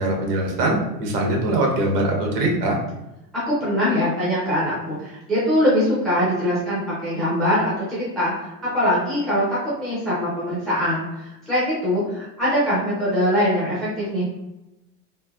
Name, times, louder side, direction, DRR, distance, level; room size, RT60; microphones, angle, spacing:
voice 1, 0.0-2.8, right 1 dB, 90° right, 0 dB, 1.1 m, -22 dB
voice 2, 3.3-8.5 8.7-14.2, equal, ahead, -9 dB, 0.4 m, -22 dB
3.3 x 2.6 x 2.3 m, 0.94 s
supercardioid pair, 165°, 46 cm